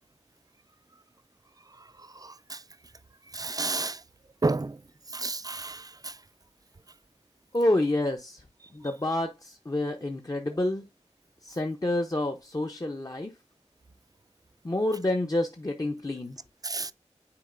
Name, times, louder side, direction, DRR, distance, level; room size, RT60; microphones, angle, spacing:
voice 1, 3.3-4.0 4.4-4.7 5.1-5.8 16.6-16.9, right 3 dB, 35° right, 0.4 m, -29 dB
voice 2, 7.5-8.4 8.7-10.8 11.4-13.3 14.6-16.4, left 1 dB, 35° left, 0.8 m, -28 dB
9.8 x 4.3 x 2.5 m
wide cardioid pair, 55°, 12 cm